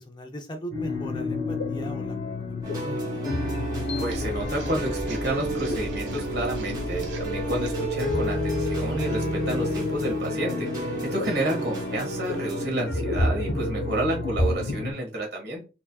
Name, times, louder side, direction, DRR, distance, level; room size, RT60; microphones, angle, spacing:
voice 1, 0.0-3.0 11.1-11.7, right 1 dB, 25° left, 0.5 m, -39 dB
sound 1, 0.7-14.9, left 2 dB, 75° left, 1.0 m, -30 dB
sound 2, 2.6-12.7, right 2 dB, 20° right, 1.3 m, -34 dB
voice 2, 4.0-15.7, right 1 dB, 60° right, 1.5 m, -30 dB
sound 3, 4.1-10.3, right 1 dB, 85° right, 1.1 m, -39 dB
4.6 x 2.7 x 2.3 m
head